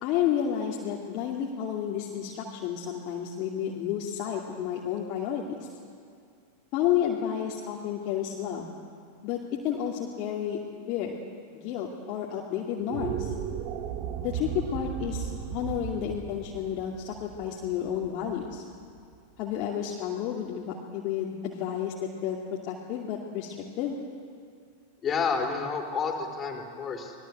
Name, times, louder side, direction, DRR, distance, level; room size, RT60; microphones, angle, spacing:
voice 1, 0.0-5.7 6.7-8.7 9.2-10.6 10.9-11.2 11.5-13.3 14.2-18.6 19.4-22.4 22.7-24.0, left 9 dB, 40° left, -2 dB, 2.5 m, -31 dB
sound 1, 12.8-19.2, right 8 dB, 45° right, 2.0 m, -36 dB
voice 2, 25.0-27.1, left 5 dB, 25° left, 2 dB, 4.3 m, -30 dB
26.5 x 20.0 x 8.1 m, 2.3 s
figure-of-eight pair, 90°, 0 cm